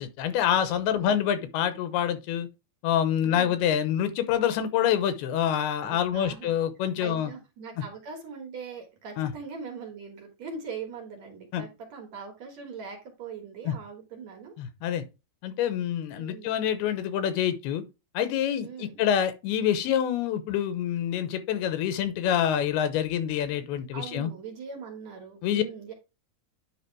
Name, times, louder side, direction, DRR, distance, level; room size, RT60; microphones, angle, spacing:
voice 1, 0.0-2.5 2.8-7.3 9.2-9.3 11.5-11.6 13.7-13.8 14.6-15.0 15.4-17.8 18.1-24.3 25.4-25.6, left 9 dB, 90° left, 2.9 m, -26 dB
voice 2, 0.9-1.2 3.2-3.7 5.8-6.5 7.0-14.5 16.1-16.6 18.6-19.1 23.9-25.9, right 5 dB, 55° right, 2.4 m, -41 dB
9.9 x 3.4 x 4.6 m
omnidirectional pair, 4.4 m